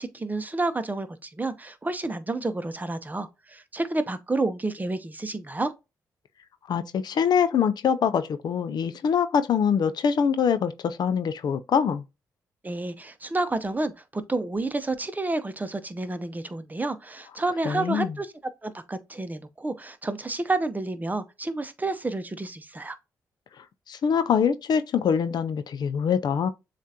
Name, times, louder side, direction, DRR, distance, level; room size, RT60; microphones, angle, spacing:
voice 1, 0.0-5.7 12.6-18.3 18.6-23.0, right 2 dB, 20° right, 0.8 m, -30 dB
voice 2, 6.7-12.0 17.7-18.1 23.9-26.5, left 7 dB, 65° left, 0.5 m, -24 dB
7.2 x 2.5 x 2.8 m
supercardioid pair, 60°, 8 cm